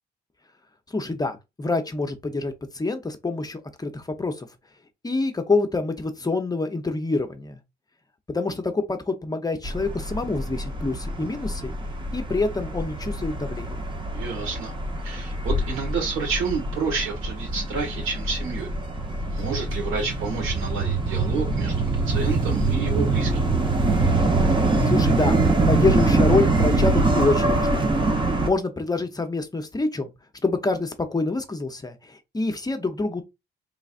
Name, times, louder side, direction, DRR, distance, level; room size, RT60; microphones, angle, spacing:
voice 1, 0.9-4.5 5.0-7.6 8.3-11.7 12.1-13.8 24.8-25.4 25.7-27.9 28.4-30.1 30.4-33.2, left 3 dB, 20° left, 0.7 m, -26 dB
sound 1, 9.6-28.5, right 2 dB, 25° right, 0.8 m, -24 dB
voice 2, 14.1-14.7 15.0-18.7 19.3-23.4, right 5 dB, 85° right, 1.7 m, -29 dB
3.9 x 3.4 x 2.4 m
cardioid pair, 90°, 20 cm